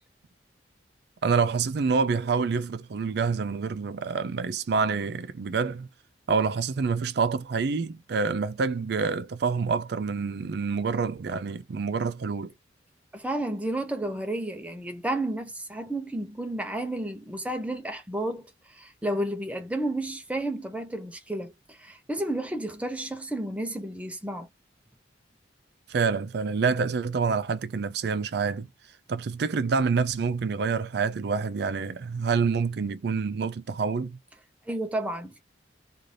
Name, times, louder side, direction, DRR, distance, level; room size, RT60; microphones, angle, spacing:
voice 1, 1.2-5.9 6.3-12.5 25.9-28.7 29.1-34.2, right 5 dB, 60° right, 0.4 m, -27 dB
voice 2, 13.1-24.5 34.7-35.4, right 1 dB, 5° right, 0.5 m, -32 dB
2.6 x 2.5 x 3.2 m
head